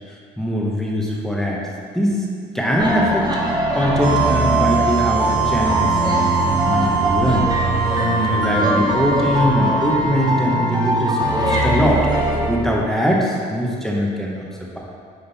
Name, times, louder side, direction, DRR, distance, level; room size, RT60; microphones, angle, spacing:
voice 1, 0.1-1.7 1.9-2.3 2.5-7.5 7.9-12.1 12.4-14.8, equal, ahead, -3 dB, 1.0 m, -22 dB
sound 1, 2.8-12.6, right 1 dB, 25° right, 1.2 m, -21 dB
sound 2, 4.0-11.8, right 7 dB, 65° right, 0.8 m, -24 dB
9.0 x 3.8 x 4.1 m, 2.1 s
cardioid pair, 110°, 17 cm